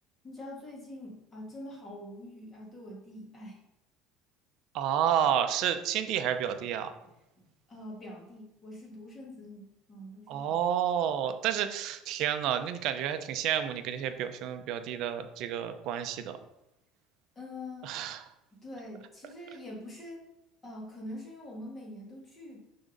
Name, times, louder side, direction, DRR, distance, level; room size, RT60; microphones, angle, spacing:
voice 1, 0.2-3.6 7.3-10.6 17.4-17.9 18.5-20.2 20.6-22.6, left 1 dB, 25° left, -2 dB, 2.2 m, -44 dB
voice 2, 4.7-6.9 10.3-16.4 17.8-18.2, right 9 dB, 60° right, 9 dB, 0.7 m, -30 dB
6.1 x 3.8 x 5.2 m, 0.89 s
cardioid pair, 130°, 0 cm